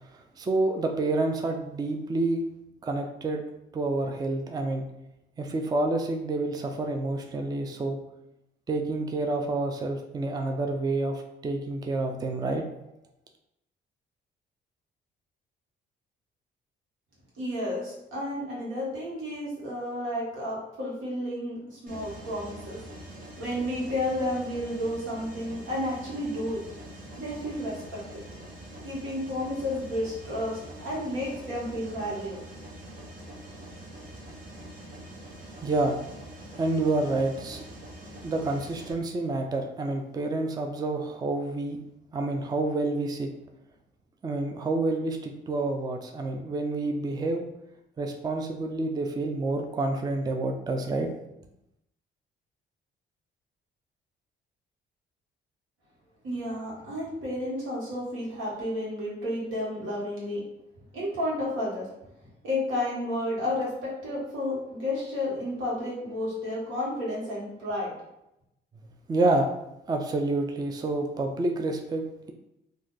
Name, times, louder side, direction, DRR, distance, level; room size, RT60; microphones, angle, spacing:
voice 1, 0.4-2.4 2.8-3.4 3.7-4.9 5.4-8.0 8.7-12.6 35.6-36.0 36.6-37.6 38.2-41.8 42.1-43.3 44.2-47.5 48.0-51.1 69.1-69.5 69.9-72.3, right 2 dB, 20° right, 4 dB, 0.4 m, -28 dB
voice 2, 17.4-22.8 23.4-26.6 27.2-28.2 28.8-32.4 56.2-60.4 60.9-61.9 62.4-67.9, left 1 dB, 90° right, -5 dB, 1.4 m, -31 dB
Mechanisms, 21.9-38.9, right 1 dB, 40° right, 0.9 m, -44 dB
2.6 x 2.4 x 3.7 m, 0.85 s
cardioid pair, 90°, 20 cm